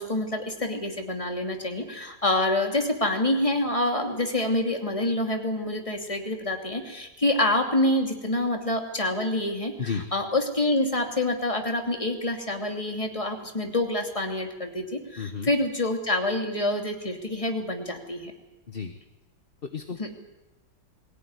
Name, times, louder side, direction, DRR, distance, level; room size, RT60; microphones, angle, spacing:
voice 1, 0.0-9.7 10.1-18.3 20.0-20.1, left 1 dB, 15° left, 3 dB, 2.7 m, -27 dB
voice 2, 15.2-15.5 18.7-18.9 19.6-20.2, left 5 dB, 35° left, 6 dB, 1.2 m, -33 dB
22.5 x 17.5 x 9.7 m, 1.0 s
omnidirectional pair, 1.9 m